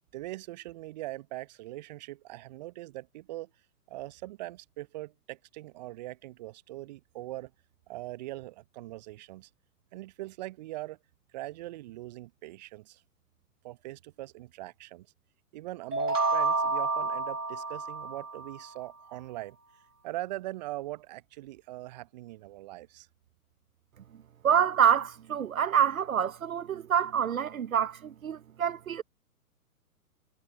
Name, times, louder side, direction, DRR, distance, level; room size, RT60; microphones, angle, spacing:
voice 1, 0.1-3.5 3.9-7.5 7.9-9.5 9.9-11.0 11.3-13.0 13.6-15.1 15.5-19.6 20.0-23.1, right 17 dB, 30° right, 0.9 m, -41 dB
sound 1, 15.9-18.7, right 3 dB, 75° right, 1.3 m, -29 dB
voice 2, 24.4-29.0, right 8 dB, 60° right, 0.8 m, -26 dB
figure-of-eight pair, 120°, 46 cm